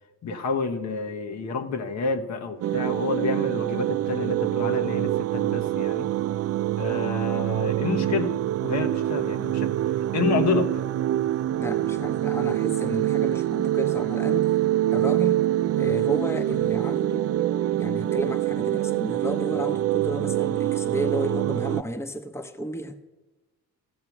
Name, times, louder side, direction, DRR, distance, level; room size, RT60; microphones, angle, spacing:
voice 1, 0.2-6.1 6.8-8.3 8.6-9.7 10.1-10.8, left 4 dB, 60° left, 1.1 m, -28 dB
sound 1, 2.6-21.8, right 13 dB, 55° right, 0.4 m, -25 dB
voice 2, 11.6-14.6 14.9-15.5 15.8-17.3 17.7-23.0, equal, 10° left, 0.9 m, -32 dB
15.0 x 6.7 x 6.0 m
cardioid pair, 90°, 30 cm